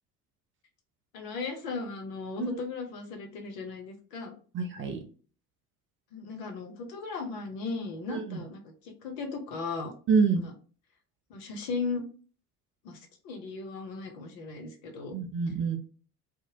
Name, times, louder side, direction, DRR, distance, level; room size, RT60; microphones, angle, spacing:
voice 1, 1.1-4.3 6.1-9.9 10.4-10.5 11.3-12.0 12.8-13.0 13.2-15.1, left 4 dB, 60° left, 4 dB, 0.8 m, -36 dB
voice 2, 4.5-5.0 8.1-8.4 10.1-10.4 15.1-15.8, right 5 dB, 30° right, 4 dB, 0.5 m, -26 dB
2.7 x 2.1 x 2.8 m, 0.39 s
figure-of-eight pair, 60°, 46 cm